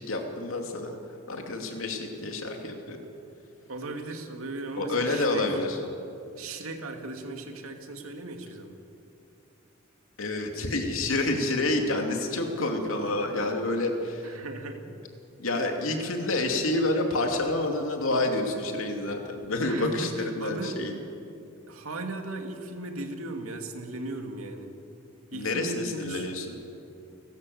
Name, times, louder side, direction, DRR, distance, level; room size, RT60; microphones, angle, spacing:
voice 1, 0.1-1.0 1.3-3.0 4.8-5.8 10.2-14.3 15.4-21.0 25.3-26.6, left 2 dB, 75° left, 3 dB, 2.8 m, -28 dB
voice 2, 3.7-5.4 6.4-8.8 14.2-15.0 19.6-20.1 20.4-20.8 21.7-24.7 25.3-26.3, right 2 dB, 90° right, 4 dB, 2.4 m, -37 dB
29.5 x 13.0 x 8.0 m, 2.7 s
head